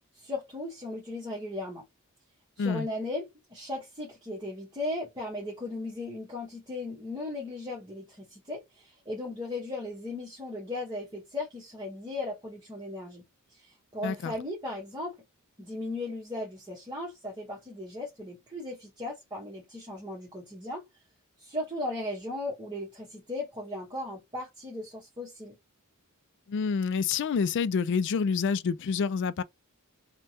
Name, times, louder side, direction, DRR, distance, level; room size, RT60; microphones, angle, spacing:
voice 1, 0.1-1.8 2.6-13.2 13.5-15.1 15.6-20.8 21.4-25.5, left 2 dB, 20° right, 0.9 m, -37 dB
voice 2, 14.0-14.3 26.5-29.4, left 5 dB, 55° left, 0.3 m, -28 dB
3.3 x 2.1 x 2.7 m
head